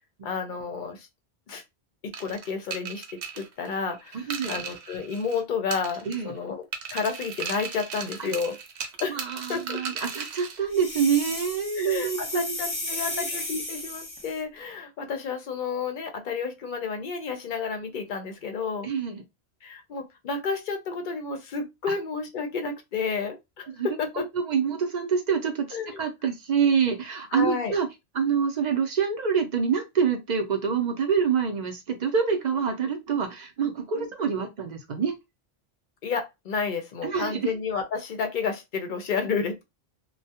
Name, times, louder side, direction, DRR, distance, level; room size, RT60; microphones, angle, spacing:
voice 1, 0.2-1.1 1.5-1.6 2.0-8.6 9.0-9.8 11.8-18.9 19.6-24.3 25.7-26.0 27.3-27.8 33.9-34.1 36.0-39.6, left 5 dB, 55° left, 0.6 m, -31 dB
sound 1, 2.1-5.4 5.7-6.4 6.7-10.6, right 6 dB, 85° right, 0.8 m, -37 dB
voice 2, 4.1-4.6 6.1-6.3 8.2-8.3 9.1-12.7 13.0-13.3 18.8-19.2 23.8-23.9 24.1-27.9 28.1-35.1 37.0-37.5, right 6 dB, 50° right, 0.6 m, -26 dB
sound 2, 10.7-14.4, left 2 dB, 25° left, 0.8 m, -34 dB
2.3 x 2.1 x 2.7 m
omnidirectional pair, 1.1 m